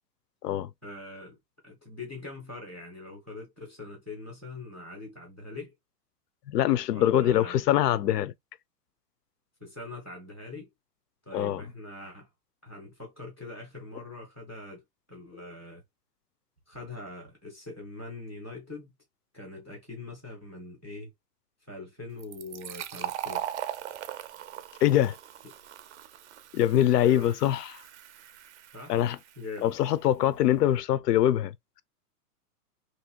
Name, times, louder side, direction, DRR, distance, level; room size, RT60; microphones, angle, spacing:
voice 1, 0.8-1.4 1.6-5.7 6.9-7.6 9.6-10.7 11.3-12.3 12.6-14.8 15.1-15.8 16.7-18.9 19.3-21.1 21.7-23.5 27.0-27.3 28.7-28.9 29.4-29.7, left 2 dB, 10° left, 0.3 m, -42 dB
voice 2, 6.5-8.3 11.3-11.6 24.8-25.2 26.5-27.8 28.9-29.2 29.6-31.5, left 12 dB, 75° left, 0.6 m, -23 dB
Fill (with liquid), 22.2-29.6, right 11 dB, 50° right, 0.5 m, -40 dB
2.9 x 2.7 x 2.8 m
hypercardioid pair, 160°, 48 cm